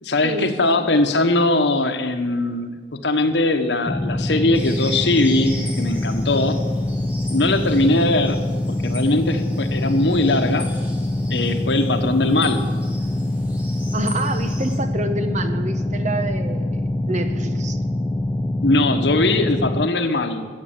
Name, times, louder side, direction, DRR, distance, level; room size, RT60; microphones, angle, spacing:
voice 1, 0.0-2.8 3.0-6.6 7.3-8.4 8.7-10.7 11.3-12.7 18.6-20.5, left 2 dB, 75° left, 7 dB, 1.2 m, -20 dB
sound 1, 3.9-19.9, left 1 dB, 10° left, 0.4 m, -24 dB
sound 2, 4.5-14.8, equal, 10° right, 2.9 m, -39 dB
voice 2, 13.9-17.8, right 2 dB, 45° right, 9 dB, 1.0 m, -28 dB
14.5 x 7.7 x 8.8 m, 1.5 s
head